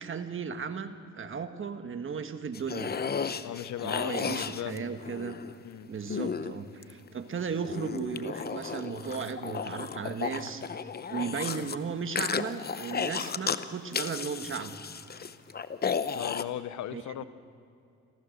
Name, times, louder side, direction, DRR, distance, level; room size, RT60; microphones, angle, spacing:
voice 1, 0.0-3.0 3.8-5.4 5.9-10.6 11.1-14.7 16.9-17.2, right 6 dB, 45° right, 8 dB, 1.5 m, -35 dB
sound 1, 2.5-5.5 6.1-7.1 7.6-11.8 12.2-13.6 13.9-16.4, left 6 dB, 35° left, 0.8 m, -34 dB
voice 2, 3.4-4.9 5.6-5.9 11.3-11.4 16.1-17.2, left 12 dB, 70° left, 14 dB, 0.8 m, -37 dB
26.5 x 14.5 x 6.6 m, 2.5 s
cardioid pair, 90°, 30 cm